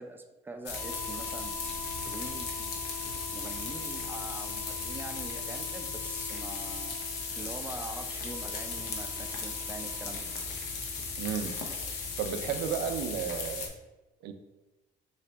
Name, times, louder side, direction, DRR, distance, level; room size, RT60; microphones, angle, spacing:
voice 1, 0.0-2.7 3.3-7.0 7.4-10.2, right 2 dB, 10° right, 5 dB, 0.3 m, -44 dB
sound 1, 0.7-13.7, left 4 dB, 90° left, 0.7 m, -36 dB
Harmonica, 0.7-13.3, left 4 dB, 25° left, 0.9 m, -46 dB
voice 2, 11.2-11.5 12.2-13.7 14.2-14.3, right 8 dB, 85° right, 7 dB, 0.4 m, -33 dB
3.3 x 2.8 x 3.3 m, 1.1 s
cardioid pair, 110°, 17 cm